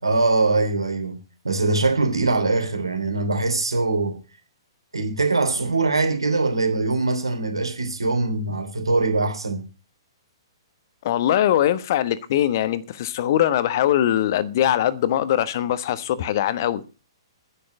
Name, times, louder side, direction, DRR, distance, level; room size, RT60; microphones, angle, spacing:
voice 1, 0.0-1.2 1.4-4.2 4.9-9.6, right 3 dB, 75° right, 3.1 m, -22 dB
voice 2, 11.0-16.8, left 11 dB, 45° left, 1.1 m, -21 dB
10.0 x 8.5 x 8.0 m
figure-of-eight pair, 120°, 3 cm